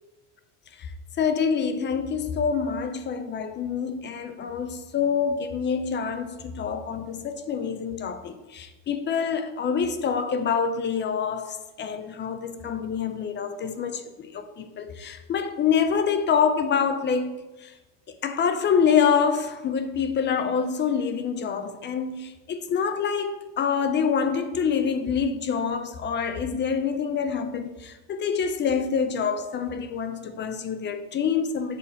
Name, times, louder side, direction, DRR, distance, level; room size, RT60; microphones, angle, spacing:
voice 1, 1.2-17.7 18.2-31.8, left 6 dB, 25° left, 0.3 m, -26 dB
7.4 x 4.2 x 5.6 m
cardioid pair, 130°, 49 cm